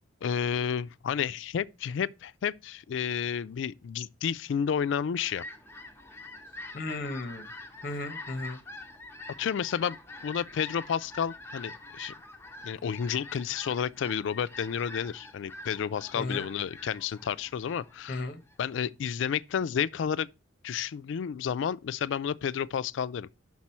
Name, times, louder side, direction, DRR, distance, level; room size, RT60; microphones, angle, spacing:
voice 1, 0.2-5.4 9.4-10.0 10.2-12.1 12.6-18.3 18.6-20.3 20.6-23.3, left 7 dB, 70° left, 0.3 m, -31 dB
Fowl, 4.9-18.7, left 2 dB, 10° left, 0.8 m, -46 dB
voice 2, 6.7-7.5 7.8-8.6 16.1-16.5 18.1-18.4, left 2 dB, 45° left, 0.8 m, -35 dB
6.0 x 5.9 x 4.3 m
head